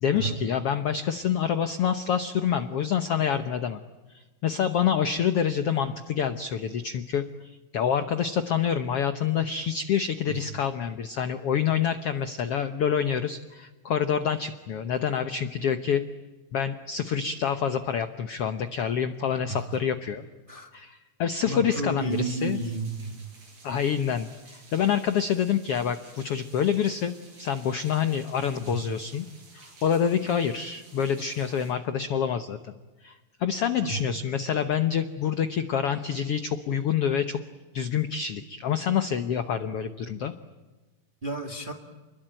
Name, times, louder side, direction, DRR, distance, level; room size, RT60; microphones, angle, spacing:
voice 1, 0.0-3.8 4.1-16.0 16.5-20.2 20.7-22.6 23.6-29.2 29.5-32.7 33.0-37.4 37.7-40.3, left 8 dB, 70° left, 10 dB, 1.4 m, -27 dB
voice 2, 21.4-23.2 28.7-28.8 33.8-34.0 41.2-41.7, right 2 dB, 20° right, 4 dB, 1.4 m, -31 dB
sound 1, 22.1-31.7, right 3 dB, 85° right, 9.3 m, -53 dB
29.5 x 21.5 x 9.0 m, 1.2 s
omnidirectional pair, 4.0 m